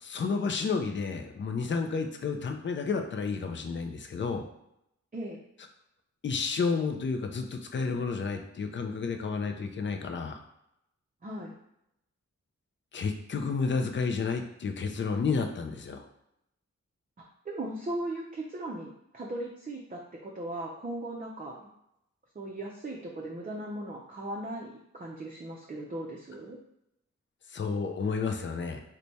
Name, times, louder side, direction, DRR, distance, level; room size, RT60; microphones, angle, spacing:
voice 1, 0.0-4.5 6.2-10.4 12.9-16.0 27.5-28.8, left 4 dB, 40° left, 5 dB, 0.4 m, -31 dB
voice 2, 11.2-11.5 17.4-21.7 22.3-26.6, right 1 dB, 30° right, -3 dB, 0.5 m, -38 dB
3.2 x 2.2 x 4.0 m, 0.81 s
wide cardioid pair, 70°, 30 cm